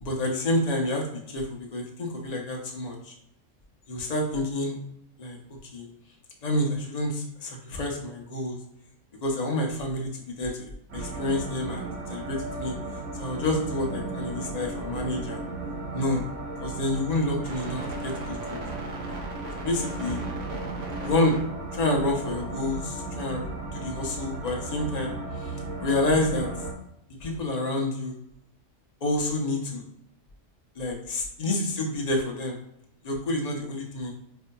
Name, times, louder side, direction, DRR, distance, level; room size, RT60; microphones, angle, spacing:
voice 1, 0.0-3.1 3.9-4.7 5.2-5.4 5.7-5.9 6.4-8.6 9.2-10.5 10.9-12.7 13.2-15.4 15.9-16.2 16.6-18.6 19.6-20.2 21.0-21.4 21.7-26.5 27.2-28.1 29.0-29.8 30.8-32.6 33.0-34.1, left 1 dB, 40° left, 1 dB, 0.7 m, -28 dB
sound 1, 10.9-26.7, right 2 dB, 85° right, 1.1 m, -35 dB
4.4 x 2.7 x 2.2 m, 0.78 s
omnidirectional pair, 1.3 m